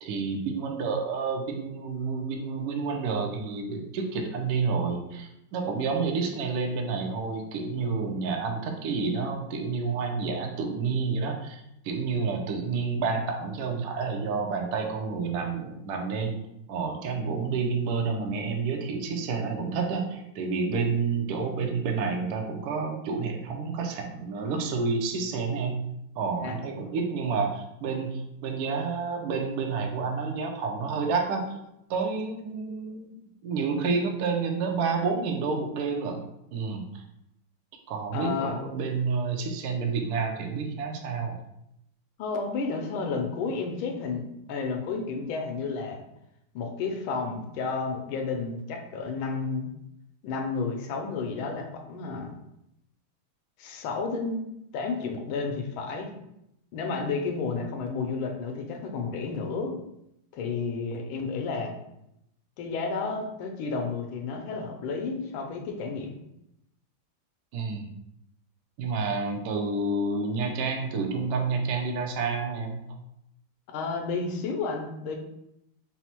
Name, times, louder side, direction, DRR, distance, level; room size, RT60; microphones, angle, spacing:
voice 1, 0.0-16.4 16.7-31.6 31.9-37.0 37.9-41.4 67.5-67.9 68.8-73.0, right 4 dB, 80° right, 3 dB, 0.8 m, -29 dB
voice 2, 38.1-38.6 42.2-46.0 46.5-49.7 50.2-52.3 53.6-54.4 54.7-56.1 56.7-59.8 60.3-61.7 62.6-66.2 73.7-75.2, left 4 dB, 80° left, 2 dB, 1.4 m, -31 dB
4.2 x 2.0 x 4.3 m, 0.81 s
omnidirectional pair, 2.3 m